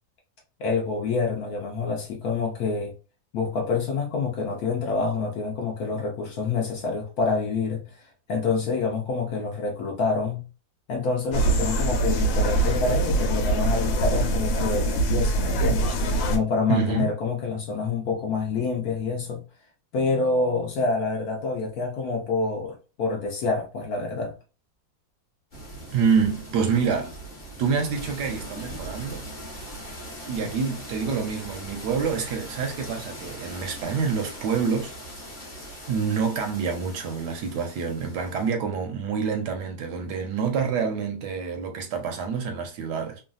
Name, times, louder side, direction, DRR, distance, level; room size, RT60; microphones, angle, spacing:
voice 1, 0.6-2.9 3.3-10.4 10.9-19.4 19.9-24.3, left 4 dB, 65° left, 1.0 m, -27 dB
sound 1, 11.3-16.4, right 2 dB, 85° left, 1.4 m, -23 dB
voice 2, 16.7-17.1 25.9-27.1 27.6-29.3 30.3-34.9 35.9-43.2, right 6 dB, 75° right, 1.0 m, -27 dB
sound 2, 25.5-38.5, equal, 35° left, 0.9 m, -40 dB
3.1 x 2.3 x 2.4 m
omnidirectional pair, 2.0 m